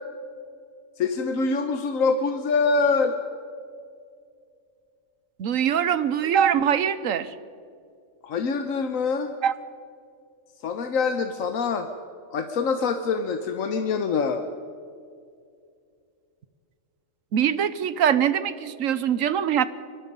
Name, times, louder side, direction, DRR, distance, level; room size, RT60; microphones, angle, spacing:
voice 1, 1.0-3.2 8.2-9.3 10.6-11.9 12.3-14.4, left 4 dB, 80° left, 7 dB, 1.4 m, -25 dB
voice 2, 5.4-7.3 9.4-9.5 17.3-19.6, right 8 dB, 75° right, 15 dB, 1.3 m, -23 dB
25.0 x 19.5 x 5.4 m, 2.3 s
omnidirectional pair, 1.4 m